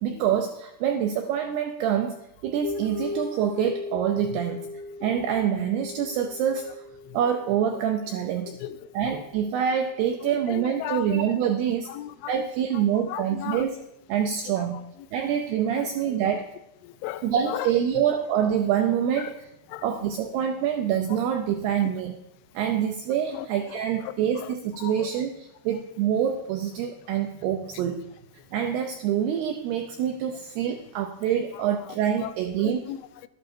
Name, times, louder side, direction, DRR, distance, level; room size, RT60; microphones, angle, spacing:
voice 1, 0.0-2.2 2.4-4.7 5.0-6.8 7.1-8.5 8.9-11.9 12.3-13.8 14.1-14.8 15.1-16.4 17.2-19.5 19.8-22.2 22.5-28.0 28.5-32.9, right 9 dB, 85° right, 5 dB, 2.3 m, -26 dB
sound 1, 2.6-11.6, left 3 dB, 70° left, 2.5 m, -39 dB
voice 2, 10.5-11.3 11.9-12.3 12.8-13.6 14.6-14.7 16.8-17.7 19.2-19.3 19.7-19.8 23.3-23.5 24.0-24.1 24.8-25.1 32.2-32.3 32.6-33.3, left 14 dB, 85° left, 13 dB, 3.1 m, -35 dB
12.0 x 11.5 x 4.3 m, 0.85 s
omnidirectional pair, 5.5 m